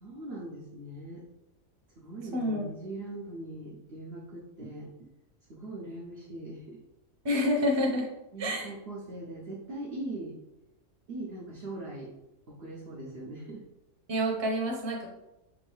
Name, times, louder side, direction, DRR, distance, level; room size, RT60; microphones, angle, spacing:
voice 1, 0.0-1.3 2.0-4.9 5.5-6.8 8.3-10.4 11.1-12.1 12.5-13.7, right 2 dB, 55° right, -3 dB, 0.9 m, -41 dB
voice 2, 2.3-2.6 7.2-8.1 8.4-8.7 14.1-15.1, equal, 25° right, -2 dB, 0.8 m, -28 dB
6.0 x 2.6 x 3.2 m, 0.93 s
omnidirectional pair, 1.4 m